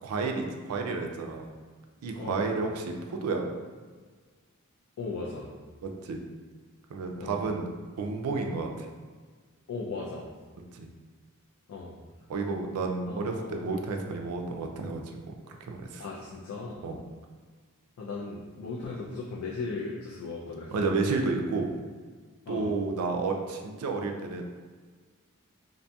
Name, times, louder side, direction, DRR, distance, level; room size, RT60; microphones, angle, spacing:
voice 1, 0.0-1.5 2.0-3.4 5.8-6.2 6.9-7.7 8.0-8.9 10.7-10.9 12.3-16.0 16.8-17.0 20.7-21.7 22.5-24.4, right 3 dB, 85° right, 3 dB, 0.3 m, -31 dB
voice 2, 2.2-2.6 5.0-5.5 7.2-7.4 9.7-10.3 11.7-12.0 13.1-13.7 16.0-16.9 18.0-20.7 22.5-22.7, left 3 dB, 80° left, -3 dB, 0.4 m, -37 dB
2.7 x 2.5 x 2.2 m, 1.5 s
head